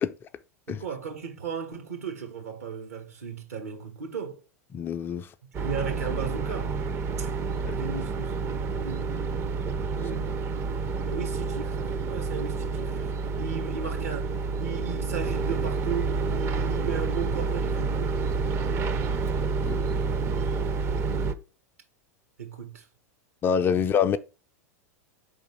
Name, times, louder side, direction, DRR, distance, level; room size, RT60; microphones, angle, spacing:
voice 1, 0.7-4.4 5.5-6.8 7.2-7.3 7.7-8.3 8.7-9.1 9.9-10.4 11.0-18.3 18.7-19.0 22.4-22.8 23.7-23.9, right 6 dB, 70° right, 1.6 m, -36 dB
voice 2, 4.7-5.2 19.7-19.8 23.4-24.2, left 7 dB, 25° left, 0.4 m, -24 dB
sound 1, 5.5-21.3, right 4 dB, 30° right, 0.6 m, -29 dB
5.0 x 3.8 x 5.0 m
figure-of-eight pair, 90°, 8 cm